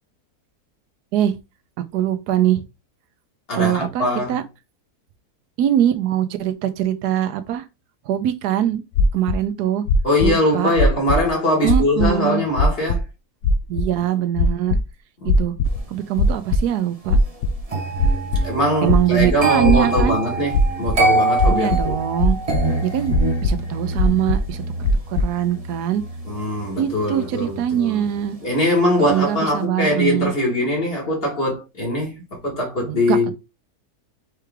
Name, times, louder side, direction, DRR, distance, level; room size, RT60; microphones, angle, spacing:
voice 1, 1.9-2.6 3.6-4.4 5.6-7.6 8.1-8.8 9.1-9.8 10.2-10.7 11.6-12.4 13.7-14.8 15.4-15.5 15.9-17.2 18.8-20.2 21.5-22.4 22.8-23.1 23.4-24.6 25.1-26.0 26.8-28.4 29.0-30.3 32.8-33.3, right 11 dB, 90° right, 1.2 m, -22 dB
voice 2, 3.5-4.4 10.0-13.0 18.4-21.9 26.3-28.0 28.4-33.3, left 1 dB, 40° left, 2.0 m, -22 dB
sound 1, 8.9-9.4 9.9-10.3 10.8-11.3 11.7-12.1 12.6-13.0 13.4-13.8 14.3-14.8 15.3-15.8 16.2-16.6 17.1-17.6 18.0-18.4 18.9-20.1 20.5-21.0 21.4-21.9 22.2-22.6 23.1-23.5 24.0-24.5 24.8-25.3, left 2 dB, 70° left, 0.8 m, -18 dB
sound 2, 17.7-28.7 29.0-29.3, right 2 dB, 30° right, 0.8 m, -26 dB
4.7 x 3.1 x 3.5 m
omnidirectional pair, 1.6 m